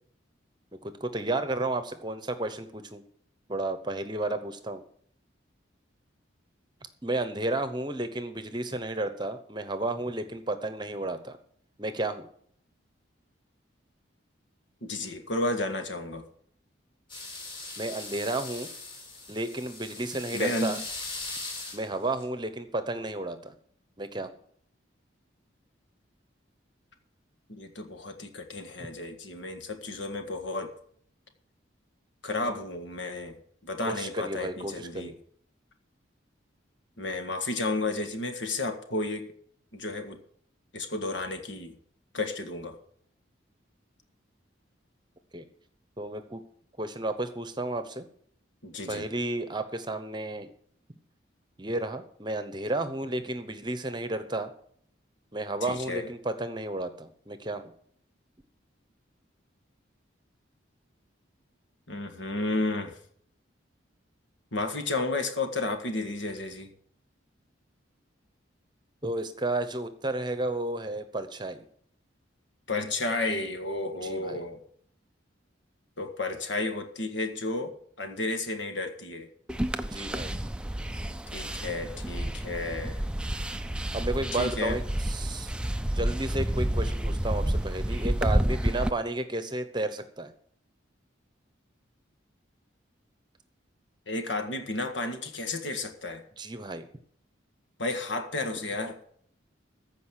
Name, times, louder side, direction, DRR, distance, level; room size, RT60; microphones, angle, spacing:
voice 1, 0.8-3.0 3.5-4.8 7.0-11.4 11.8-12.3 17.8-18.7 19.3-20.8 21.7-23.5 24.0-24.3 33.8-35.2 45.3-45.5 46.0-46.4 46.8-48.1 48.9-50.5 51.6-54.5 55.3-57.7 69.0-71.6 74.0-74.4 79.8-80.4 83.9-85.5 85.9-90.3 96.4-96.9, right 2 dB, 20° right, 10 dB, 0.9 m, -32 dB
voice 2, 14.8-16.2 20.3-20.8 27.5-30.7 32.2-33.4 33.6-35.1 37.0-39.3 39.7-40.2 40.7-41.8 42.1-42.8 48.6-49.0 55.6-56.1 61.9-63.0 64.5-66.7 72.7-74.6 76.0-79.3 81.3-83.0 84.3-84.8 94.1-96.2 97.8-99.0, left 2 dB, 70° left, 7 dB, 1.7 m, -32 dB
sound 1, 17.1-22.2, left 3 dB, 25° left, 3.3 m, -40 dB
sound 2, 79.5-88.9, right 1 dB, 5° right, 0.4 m, -30 dB
14.5 x 5.3 x 8.1 m, 0.62 s
head